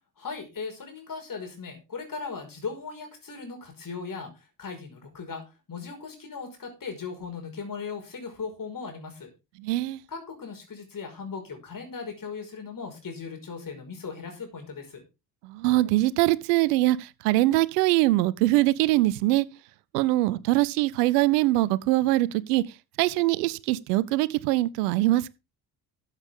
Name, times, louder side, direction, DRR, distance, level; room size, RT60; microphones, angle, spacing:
voice 1, 0.2-9.3 10.1-15.0, left 5 dB, 45° left, 5.5 m, -38 dB
voice 2, 9.6-10.0 15.4-19.5 19.9-22.6 23.0-25.3, right 18 dB, 80° right, 0.7 m, -23 dB
14.0 x 8.2 x 3.7 m
hypercardioid pair, 50°, 46 cm